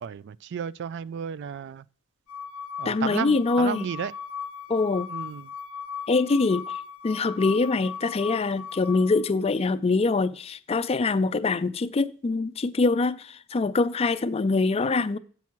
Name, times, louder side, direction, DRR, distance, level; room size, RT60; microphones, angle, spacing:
voice 1, 0.0-1.9 2.8-4.1 5.1-5.5, right 7 dB, 60° right, 0.3 m, -33 dB
sound 1, 2.3-9.3, left 7 dB, 85° left, 0.5 m, -38 dB
voice 2, 2.9-3.9 4.7-5.1 6.1-15.2, left 3 dB, 30° left, 0.4 m, -24 dB
8.3 x 5.9 x 4.5 m
head